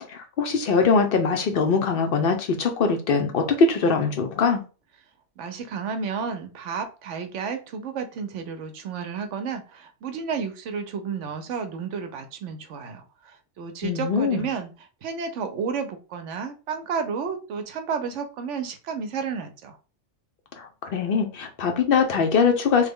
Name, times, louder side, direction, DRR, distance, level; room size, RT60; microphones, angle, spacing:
voice 1, 0.1-4.6 13.8-14.4 20.6-22.9, left 5 dB, 60° left, 0.6 m, -22 dB
voice 2, 5.4-14.7 15.0-19.8, right 6 dB, 70° right, 0.9 m, -31 dB
3.2 x 2.1 x 3.5 m
omnidirectional pair, 1.4 m